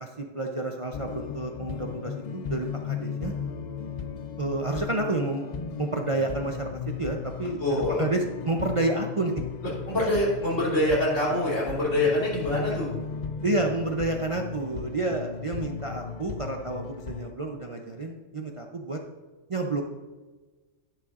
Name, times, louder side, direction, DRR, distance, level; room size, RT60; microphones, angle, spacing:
voice 1, 0.0-3.3 4.4-5.5 5.8-6.7 7.0-9.3 13.4-19.0 19.5-19.8, right 2 dB, 40° right, 2 dB, 0.5 m, -30 dB
sound 1, 0.9-17.3, left 7 dB, 65° left, 0.4 m, -36 dB
voice 2, 7.6-8.1 9.9-12.9, left 1 dB, 85° left, -6 dB, 3.6 m, -25 dB
11.0 x 10.0 x 2.4 m, 1.3 s
omnidirectional pair, 1.3 m